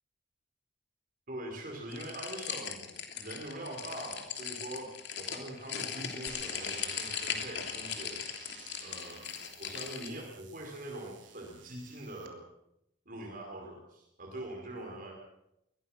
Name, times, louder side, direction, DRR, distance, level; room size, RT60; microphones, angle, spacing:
voice 1, 1.3-4.9 5.2-8.5 8.8-9.2 9.6-12.4 13.1-15.1, right 1 dB, 45° right, 0 dB, 5.2 m, -43 dB
sound 1, 1.9-10.1, left 8 dB, 60° left, 3.1 m, -39 dB
sound 2, 6.3-12.3, right 6 dB, 75° right, 3.2 m, -52 dB
23.5 x 20.5 x 6.0 m, 0.80 s
head